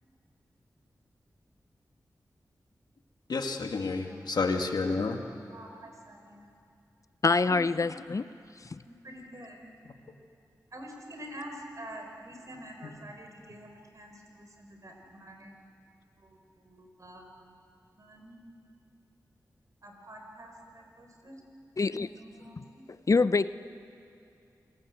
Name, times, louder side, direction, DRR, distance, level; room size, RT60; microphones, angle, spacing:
voice 1, 3.3-5.2 12.8-12.9, left 4 dB, 80° left, 5 dB, 1.8 m, -30 dB
voice 2, 4.0-4.4 5.5-6.5 7.4-7.6 8.8-9.7 10.7-15.5 16.2-16.3 16.7-17.2 18.0-18.4 19.8-21.4 21.9-22.8, right 1 dB, 50° right, 2 dB, 5.2 m, -47 dB
voice 3, 7.2-8.3 8.7-8.8 21.8-22.1 22.6-22.7 23.1-23.5, left 4 dB, 50° left, 15 dB, 0.6 m, -25 dB
27.5 x 18.5 x 8.1 m, 2.4 s
cardioid pair, 45°, 7 cm